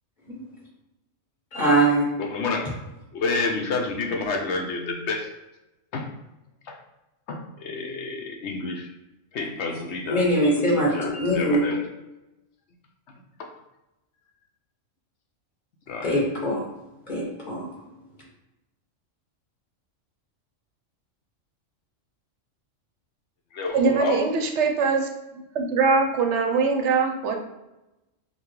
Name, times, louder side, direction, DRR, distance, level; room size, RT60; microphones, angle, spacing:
voice 1, 1.5-2.1 10.1-11.6 16.0-16.6 17.1-17.6, right 1 dB, 35° left, -4 dB, 1.5 m, -22 dB
voice 2, 2.2-2.7 3.1-5.3 5.9-6.1 6.6-6.8 7.3-8.9 9.3-10.6 10.9-11.9 13.1-13.5 15.9-16.2 23.5-24.2, left 3 dB, 65° left, 2 dB, 0.8 m, -29 dB
voice 3, 23.7-25.1 25.5-27.4, right 4 dB, 65° right, 3 dB, 0.8 m, -22 dB
5.3 x 2.2 x 3.1 m, 0.96 s
omnidirectional pair, 1.4 m